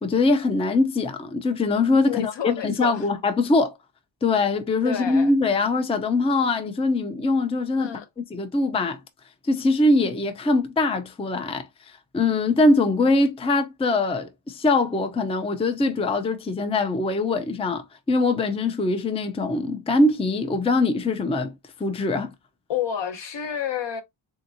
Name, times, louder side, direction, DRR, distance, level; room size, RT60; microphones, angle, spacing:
voice 1, 0.0-3.7 4.2-7.9 8.3-9.0 9.5-11.7 12.1-21.5 21.8-22.3, left 2 dB, 15° left, 0.5 m, -22 dB
voice 2, 2.1-3.1 4.8-5.3 7.8-8.0 22.7-24.0, left 9 dB, 65° left, 0.9 m, -29 dB
3.5 x 2.7 x 2.6 m
wide cardioid pair, 105°, 46 cm